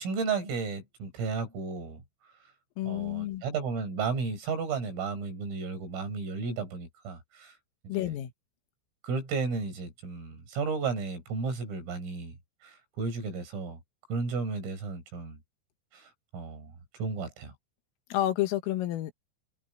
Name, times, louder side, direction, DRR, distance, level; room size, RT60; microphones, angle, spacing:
voice 1, 0.0-2.0 2.9-7.6 7.9-8.1 9.0-12.4 12.6-13.8 14.1-15.4 15.9-17.5, right 4 dB, 90° right, 9.2 m, -33 dB
voice 2, 2.8-3.4 7.9-8.3 18.1-19.1, left 14 dB, 90° left, 4.3 m, -30 dB
omnidirectional pair, 5.7 m